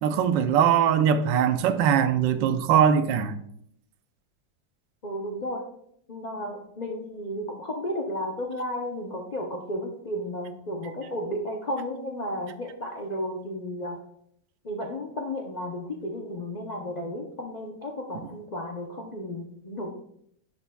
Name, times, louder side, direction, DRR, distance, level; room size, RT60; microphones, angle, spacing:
voice 1, 0.0-3.4, right 8 dB, 85° right, 1.3 m, -21 dB
voice 2, 5.0-5.6 6.1-14.0 14.6-19.9, equal, 70° left, 0.4 m, -33 dB
11.0 x 5.7 x 2.3 m
omnidirectional pair, 1.9 m